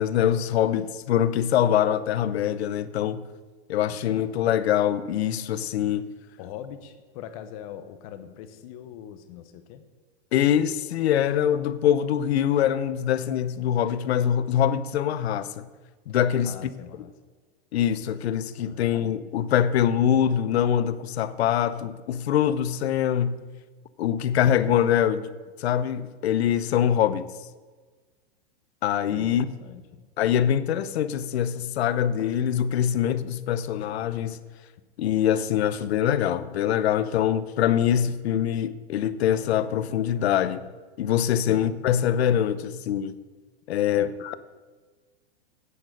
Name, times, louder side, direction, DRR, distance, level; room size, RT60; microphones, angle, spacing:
voice 1, 0.0-3.2 3.7-6.1 10.3-15.7 16.1-16.5 17.7-23.4 24.0-25.3 25.6-27.3 28.8-29.5 30.2-34.4 35.0-40.7 41.0-43.2 43.7-44.4, left 10 dB, 80° left, 0.8 m, -24 dB
voice 2, 3.9-4.2 6.4-9.9 16.4-17.1 18.6-19.0 29.1-30.0 43.9-44.1, left 10 dB, 35° left, 0.8 m, -43 dB
8.9 x 8.5 x 6.5 m
supercardioid pair, 170°, 32 cm